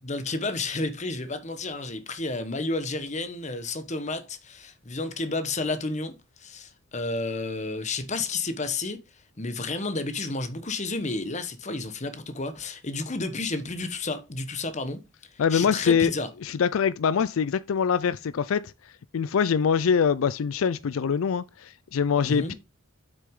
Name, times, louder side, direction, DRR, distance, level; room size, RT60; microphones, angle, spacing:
voice 1, 0.0-9.0 9.4-16.3 22.2-22.5, left 3 dB, 35° left, 1.1 m, -31 dB
voice 2, 15.4-16.1 16.4-18.7 19.1-22.5, left 6 dB, 80° left, 0.4 m, -24 dB
7.7 x 6.3 x 3.7 m
head